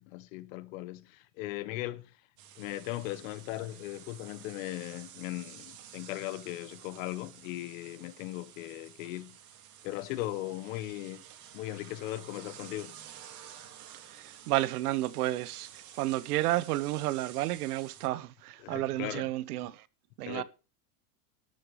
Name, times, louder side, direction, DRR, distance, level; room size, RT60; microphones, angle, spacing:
voice 1, 0.0-2.1 2.6-9.4 9.8-11.2 11.5-13.0 18.6-19.3 20.2-20.4, left 16 dB, 60° left, 1.3 m, -38 dB
sound 1, 2.4-18.1, right 10 dB, 40° right, 2.4 m, -51 dB
voice 2, 14.1-19.8 20.2-20.4, right 16 dB, 80° right, 1.1 m, -31 dB
13.0 x 6.6 x 6.9 m
supercardioid pair, 150°, 44 cm